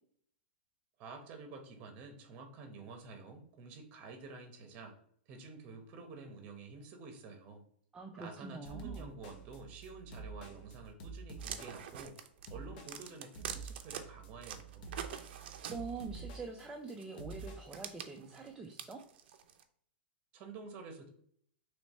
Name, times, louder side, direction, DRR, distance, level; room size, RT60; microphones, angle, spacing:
voice 1, 1.0-4.9 5.3-7.6 8.2-12.2 12.5-14.9 20.3-21.1, right 4 dB, 30° right, 4 dB, 0.9 m, -49 dB
voice 2, 7.9-9.1 15.7-19.0, right 4 dB, 10° right, 1 dB, 0.4 m, -45 dB
sound 1, 8.6-17.8, right 4 dB, 45° left, 0.7 m, -48 dB
sound 2, 11.4-14.0 14.4-16.2 17.0-19.6, right 9 dB, 65° right, 0.5 m, -45 dB
3.2 x 3.1 x 4.1 m, 0.63 s
supercardioid pair, 160°, 6 cm